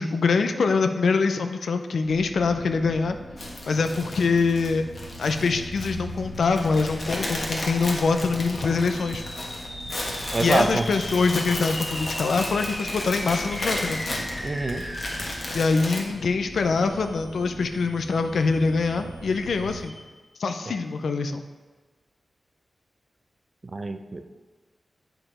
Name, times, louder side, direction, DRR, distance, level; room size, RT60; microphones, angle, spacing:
voice 1, 0.0-3.2 3.7-4.8 5.2-9.2 10.4-14.0 15.5-20.0 20.4-21.4, left 4 dB, 85° left, 7 dB, 0.5 m, -24 dB
sound 1, 2.0-19.8, equal, 5° right, 1.5 m, -41 dB
sound 2, 3.4-16.0, left 1 dB, 45° left, 1.3 m, -34 dB
sound 3, 8.8-20.3, left 1 dB, 20° left, 0.9 m, -39 dB
voice 2, 10.3-10.9 14.4-14.8 20.7-20.8 23.6-24.2, right 2 dB, 35° right, 8 dB, 0.5 m, -26 dB
7.7 x 4.9 x 4.9 m, 1.3 s
wide cardioid pair, 115°, 0 cm